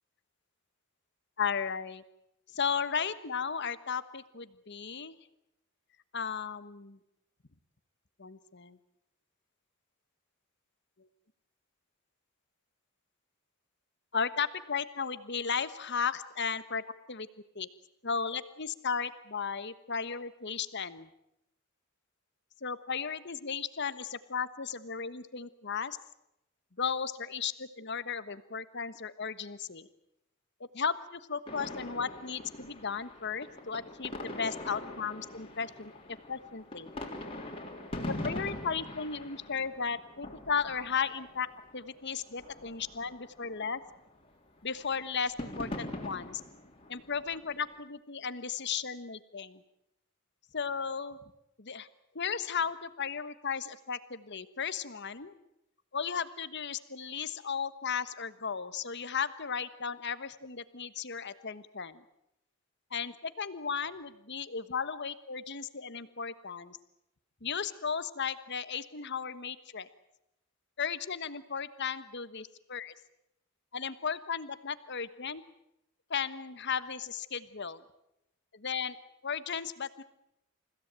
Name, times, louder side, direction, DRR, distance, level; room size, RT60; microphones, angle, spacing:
voice 1, 1.4-2.0 2.5-5.2 6.1-7.0 8.2-8.8 11.0-11.1 14.1-16.8 17.1-17.3 17.5-17.7 18.0-21.1 22.6-26.0 26.8-29.9 30.7-36.9 38.0-41.5 41.7-43.8 44.6-46.4 46.9-49.6 50.5-51.2 51.6-51.9 52.1-55.4 55.9-62.0 62.9-66.8 67.4-69.9 70.8-72.9 73.7-75.4 76.1-77.8 78.5-79.0 79.2-80.0, left 6 dB, 50° left, 13 dB, 1.3 m, -35 dB
sound 1, 31.5-41.8 42.2-44.3 44.6-47.8, left 1 dB, 25° left, 3.5 m, -43 dB
29.0 x 16.5 x 8.9 m, 0.83 s
head